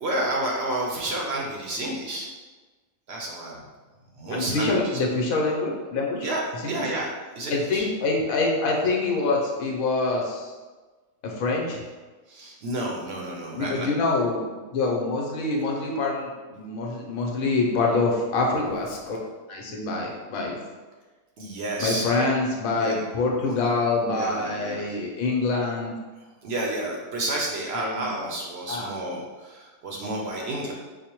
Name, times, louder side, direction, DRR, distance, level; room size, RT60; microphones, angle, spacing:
voice 1, 0.0-2.3 3.1-3.7 4.1-5.0 6.2-6.4 6.7-7.9 12.3-13.9 21.4-22.2 22.7-22.9 24.0-25.0 26.2-30.7, right 1 dB, 60° right, -2 dB, 0.7 m, -30 dB
voice 2, 4.3-6.3 6.6-6.7 7.5-10.5 11.2-11.8 13.5-14.4 14.7-20.6 21.8-25.9 27.8-28.1 28.7-28.9, left 3 dB, 90° left, -1 dB, 1.1 m, -25 dB
4.8 x 2.1 x 2.9 m, 1.3 s
omnidirectional pair, 1.4 m